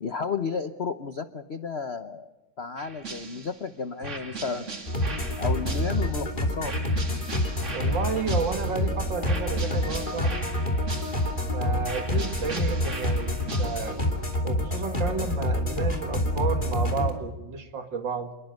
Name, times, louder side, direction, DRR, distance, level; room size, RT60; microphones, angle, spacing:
voice 1, 0.0-2.3 2.6-4.7 5.4-6.7, left 5 dB, 50° left, 10 dB, 0.7 m, -32 dB
sound 1, 2.8-3.6 4.0-6.2 6.6-8.8 9.2-11.5 11.8-14.1, right 3 dB, 35° right, 2.6 m, -39 dB
sound 2, 4.9-17.1, left 1 dB, 25° left, 2.9 m, -27 dB
voice 2, 7.7-10.5 11.5-14.0 14.4-18.3, right 5 dB, 60° right, 7 dB, 2.7 m, -32 dB
28.0 x 21.0 x 6.6 m, 1.1 s
omnidirectional pair, 2.2 m